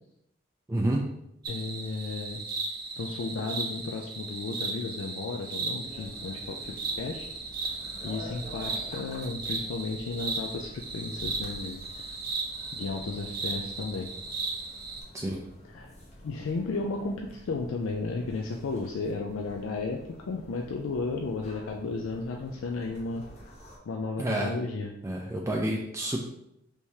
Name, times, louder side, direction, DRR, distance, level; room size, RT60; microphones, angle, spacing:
voice 1, 0.7-1.1 15.1-15.4 24.2-24.5 25.0-26.2, right 1 dB, 15° right, -1 dB, 0.3 m, -29 dB
sound 1, 1.4-15.0, right 3 dB, 50° right, 0.7 m, -36 dB
voice 2, 1.5-2.4 3.0-7.3 8.0-12.2 12.7-14.1 15.7-16.0 16.2-20.0 20.3-23.5 23.9-24.9, left 3 dB, 85° left, 2 dB, 0.4 m, -34 dB
sound 2, 5.8-23.8, equal, 35° left, 0.9 m, -49 dB
4.6 x 3.4 x 2.7 m, 0.81 s
head